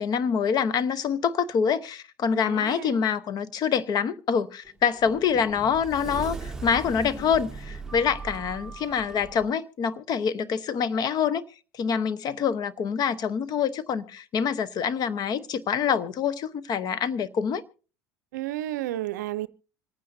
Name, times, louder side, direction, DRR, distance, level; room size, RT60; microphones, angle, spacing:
voice 1, 0.0-11.4 11.7-17.6, left 7 dB, 45° left, 0.9 m, -26 dB
voice 2, 2.5-3.0 18.3-19.5, right 14 dB, 85° right, 0.5 m, -32 dB
Sliding door, 4.6-9.5, right 4 dB, 5° right, 1.3 m, -39 dB
26.5 x 9.3 x 2.7 m
supercardioid pair, 90°, 9 cm